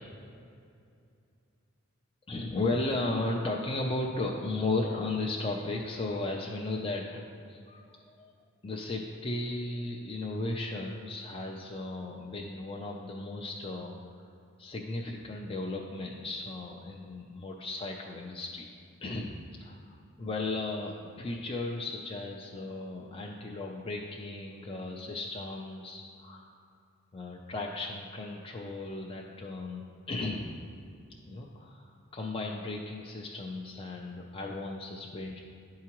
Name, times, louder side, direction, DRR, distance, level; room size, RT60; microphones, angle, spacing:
voice 1, 2.3-7.9 8.2-8.3 8.6-14.3 14.6-18.7 19.0-19.4 19.6-26.5 27.1-30.5 31.3-35.4, left 2 dB, 25° left, -1 dB, 0.4 m, -35 dB
11.0 x 4.7 x 3.0 m, 2.4 s
head